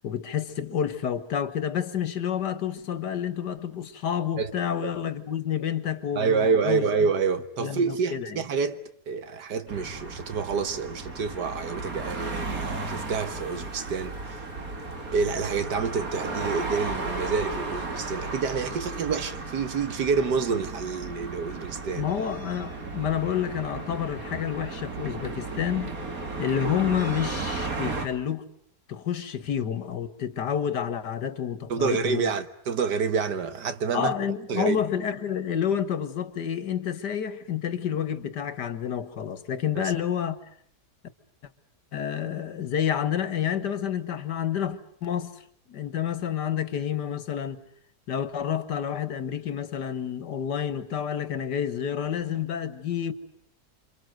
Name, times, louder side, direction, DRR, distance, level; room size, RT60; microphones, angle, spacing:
voice 1, 0.0-6.9 7.6-8.3 22.0-26.0 26.4-28.5 28.9-32.3 33.9-40.4 41.9-45.3 45.7-47.6 48.1-53.1, left 9 dB, 85° left, 2.0 m, -29 dB
voice 2, 6.2-14.4 15.1-22.1 31.7-34.1 34.5-34.8, right 5 dB, 80° right, 2.0 m, -28 dB
sound 1, 9.7-28.1, right 3 dB, 55° right, 3.0 m, -34 dB
28.5 x 25.5 x 7.9 m
omnidirectional pair, 1.8 m